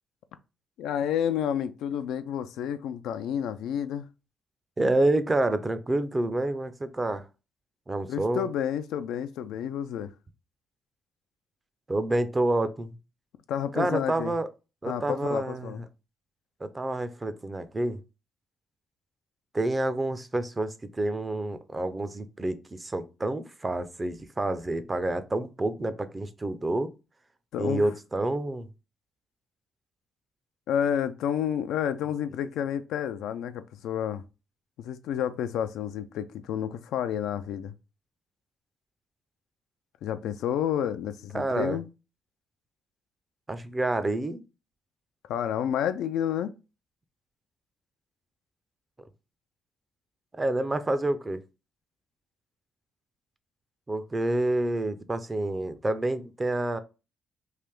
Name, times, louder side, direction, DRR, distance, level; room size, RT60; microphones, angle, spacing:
voice 1, 0.8-4.1 8.1-10.1 13.5-14.3 14.9-15.9 27.5-27.9 30.7-34.2 34.8-37.7 40.0-41.9 45.3-46.5, left 9 dB, 85° left, 0.3 m, -30 dB
voice 2, 4.8-7.2 7.9-8.5 11.9-12.9 13.7-14.5 14.8-15.7 16.6-18.0 19.5-26.9 27.6-28.7 41.3-41.8 43.5-44.4 50.3-51.4 53.9-56.8, right 2 dB, 20° right, 0.5 m, -28 dB
3.3 x 2.5 x 3.5 m
cardioid pair, 90°, 0 cm